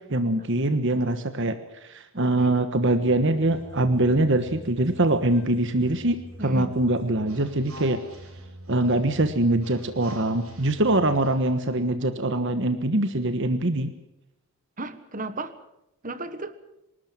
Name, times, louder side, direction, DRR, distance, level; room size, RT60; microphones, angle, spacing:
voice 1, 0.1-1.6 1.8-8.0 8.7-13.9, right 2 dB, 55° right, 9 dB, 1.3 m, -23 dB
voice 2, 2.1-2.5 6.4-6.7 14.8-15.6 16.0-16.6, right 2 dB, 35° right, 12 dB, 1.5 m, -34 dB
sound 1, 3.0-11.8, right 1 dB, 75° right, 5.7 m, -45 dB
26.0 x 13.0 x 9.0 m, 0.87 s
head